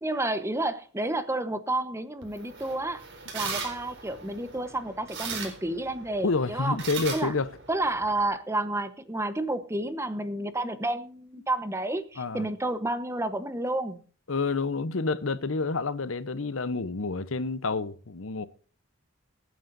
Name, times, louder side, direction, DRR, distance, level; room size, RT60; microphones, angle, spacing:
voice 1, 0.0-3.0 3.3-6.8 7.1-7.3 7.7-14.0, right 2 dB, 15° right, 1.0 m, -30 dB
sound 1, 2.2-8.3, right 4 dB, 60° right, 4.1 m, -39 dB
voice 2, 6.2-7.5 12.2-12.5 14.3-18.5, left 3 dB, 65° left, 0.8 m, -29 dB
23.5 x 9.4 x 2.6 m
head